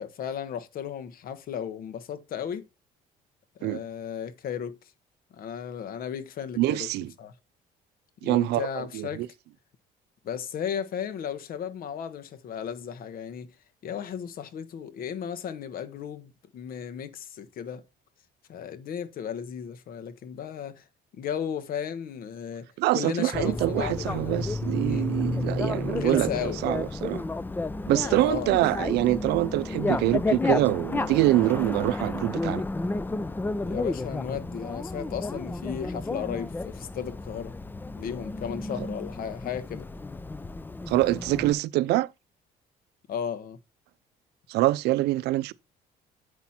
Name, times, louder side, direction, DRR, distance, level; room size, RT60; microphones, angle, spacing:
voice 1, 0.0-2.6 3.6-4.8 5.3-6.9 7.2-7.3 8.2-9.3 10.2-13.5 13.8-17.8 18.5-20.8 21.1-22.7 22.9-24.5 24.8-25.1 25.9-26.6 27.9-28.6 33.6-37.5 37.9-39.9 43.1-43.6, left 8 dB, 60° left, 1.2 m, -35 dB
voice 2, 6.6-7.1 8.2-9.3 22.8-26.3 26.6-27.2 27.9-32.6 40.9-42.1 44.5-45.5, right 16 dB, 80° right, 0.5 m, -25 dB
Bicycle, 23.3-41.5, left 2 dB, 10° left, 0.4 m, -32 dB
8.2 x 5.8 x 4.2 m
cardioid pair, 110°, 17 cm